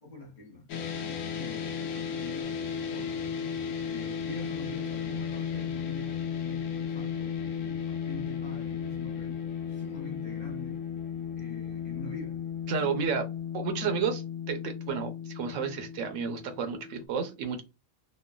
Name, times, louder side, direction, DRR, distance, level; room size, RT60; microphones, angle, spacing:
voice 1, 0.0-3.3 3.9-10.9 11.4-12.4 12.8-13.2 13.8-14.0, left 3 dB, 40° left, 0.7 m, -45 dB
sound 1, 0.7-17.1, left 7 dB, 70° left, 0.9 m, -35 dB
voice 2, 12.7-13.2 13.5-14.2 14.5-17.6, right 6 dB, 75° right, 0.9 m, -31 dB
3.1 x 2.1 x 2.2 m
omnidirectional pair, 1.4 m